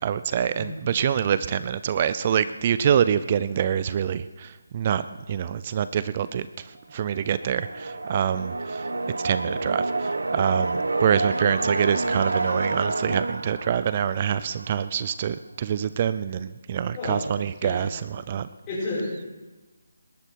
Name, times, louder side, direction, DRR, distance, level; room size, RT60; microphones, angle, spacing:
voice 1, 0.0-4.5 4.7-6.5 6.9-8.8 9.2-18.5, right 8 dB, 30° right, 14 dB, 0.5 m, -25 dB
sound 1, 7.2-14.9, right 2 dB, 85° right, 1.2 m, -29 dB
voice 2, 16.7-17.3 17.6-17.7 18.7-19.3, left 2 dB, 20° left, -13 dB, 6.7 m, -31 dB
19.5 x 13.0 x 4.7 m, 1.2 s
figure-of-eight pair, 160°, 0 cm